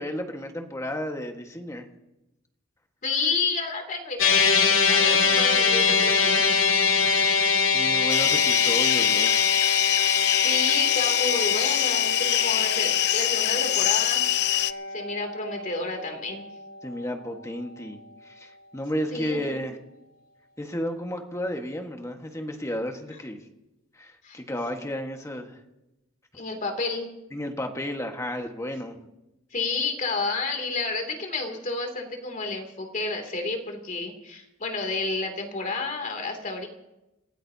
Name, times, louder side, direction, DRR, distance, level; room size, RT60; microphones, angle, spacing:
voice 1, 0.0-1.9 7.7-9.5 16.8-18.0 18.2-19.8 20.6-23.4 24.0-25.6 27.3-29.0, equal, 15° left, 4 dB, 1.6 m, -32 dB
voice 2, 3.0-6.4 10.4-14.3 14.9-16.5 19.1-19.6 24.2-24.4 26.3-27.1 29.5-36.7, left 3 dB, 40° left, 4 dB, 2.8 m, -30 dB
sound 1, 4.2-16.6, left 5 dB, 85° left, 2.3 m, -24 dB
sound 2, 8.1-14.7, left 13 dB, 55° left, 0.5 m, -24 dB
30.0 x 15.5 x 2.8 m, 0.94 s
head